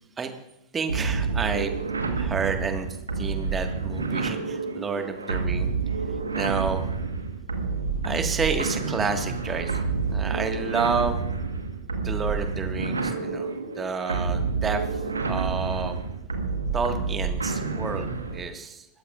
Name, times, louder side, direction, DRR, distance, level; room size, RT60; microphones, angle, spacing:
voice 1, 0.7-1.8 2.1-2.9 3.2-5.7 6.3-6.9 8.0-11.2 12.0-16.0 16.7-18.9, right 5 dB, 20° right, 6 dB, 1.7 m, -30 dB
sound 1, 0.9-18.5, right 4 dB, 75° right, 1.4 m, -29 dB
29.0 x 14.0 x 2.5 m, 0.87 s
figure-of-eight pair, 90°, 0 cm